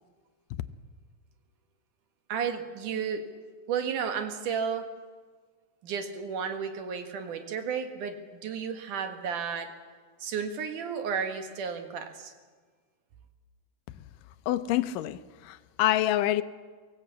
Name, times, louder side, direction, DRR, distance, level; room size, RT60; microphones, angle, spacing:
voice 1, 2.3-3.2 3.7-4.9 5.8-9.7 10.2-12.3, right 6 dB, 75° right, 3.1 m, -33 dB
voice 2, 14.5-16.4, left 13 dB, 85° left, 2.4 m, -27 dB
23.5 x 16.0 x 8.4 m
omnidirectional pair, 3.8 m